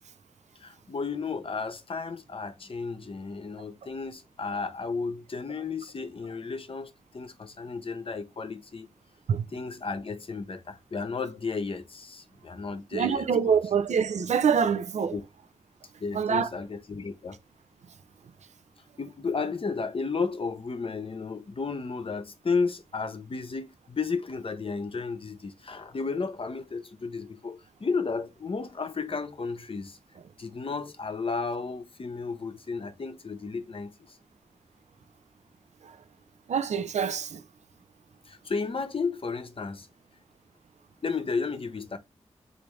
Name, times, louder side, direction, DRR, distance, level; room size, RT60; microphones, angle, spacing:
voice 1, 0.6-8.9 9.5-13.6 15.1-15.2 16.0-17.4 19.0-30.0 30.4-34.2 38.3-39.9 41.0-42.0, left 4 dB, 50° left, 0.7 m, -33 dB
voice 2, 12.9-15.1 16.1-16.5 36.5-37.4, right 7 dB, 75° right, 0.4 m, -25 dB
3.4 x 2.6 x 3.1 m
cardioid pair, 45°, 12 cm